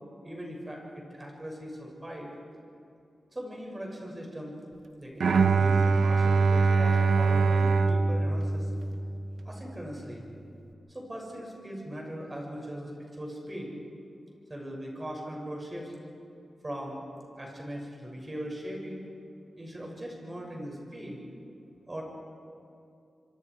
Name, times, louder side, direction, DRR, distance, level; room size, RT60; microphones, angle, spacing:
voice 1, 0.2-2.3 3.3-4.5 5.0-8.7 9.4-10.3 10.9-13.7 14.5-15.9 16.6-17.0 17.4-19.1 19.6-21.2 21.9-22.0, equal, 25° right, -1 dB, 7.0 m, -39 dB
Bowed string instrument, 5.2-9.3, right 4 dB, 85° right, 1.0 m, -23 dB
26.5 x 25.5 x 4.9 m, 2.6 s
wide cardioid pair, 80°, 0 cm